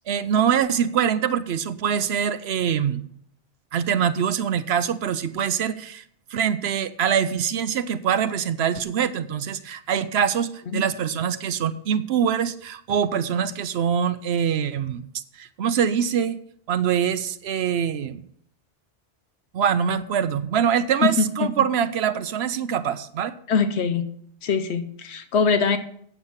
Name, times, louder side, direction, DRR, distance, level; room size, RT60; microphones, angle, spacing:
voice 1, 0.1-3.0 3.7-6.0 6.3-15.1 15.3-16.4 16.7-18.2 19.5-23.3, right 8 dB, 80° right, 12 dB, 0.9 m, -24 dB
voice 2, 21.0-21.5 23.5-24.0 24.4-25.8, left 5 dB, 85° left, 9 dB, 1.1 m, -22 dB
8.4 x 7.8 x 7.1 m, 0.65 s
omnidirectional pair, 1.1 m